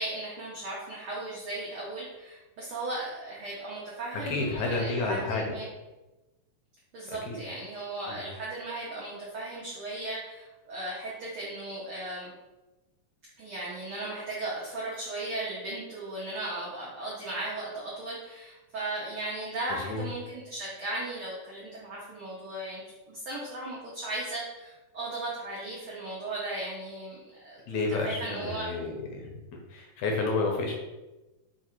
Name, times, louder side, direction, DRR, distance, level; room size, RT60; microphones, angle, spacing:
voice 1, 0.0-5.7 6.9-12.3 13.4-28.7, right 2 dB, 85° right, -6 dB, 1.1 m, -36 dB
voice 2, 4.3-5.4 7.3-7.4 8.1-8.2 19.7-20.1 27.7-29.4 29.7-30.7, left 3 dB, 75° left, 1 dB, 1.7 m, -30 dB
5.0 x 2.4 x 4.3 m, 1.1 s
omnidirectional pair, 3.7 m